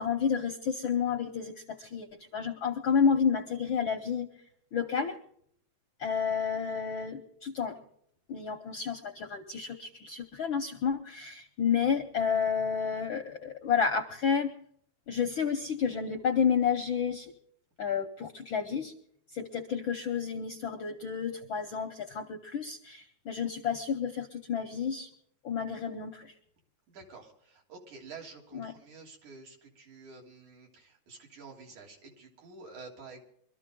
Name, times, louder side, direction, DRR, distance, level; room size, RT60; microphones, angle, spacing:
voice 1, 0.0-2.1 2.3-4.3 4.7-5.2 6.0-7.8 8.3-14.5 15.1-17.3 17.8-18.9 19.3-25.1 25.4-26.3 28.5-28.7, left 6 dB, 65° left, 6 dB, 1.2 m, -30 dB
voice 2, 26.9-33.2, right 4 dB, 75° right, 0 dB, 4.6 m, -49 dB
24.0 x 13.5 x 3.7 m, 0.66 s
omnidirectional pair, 3.4 m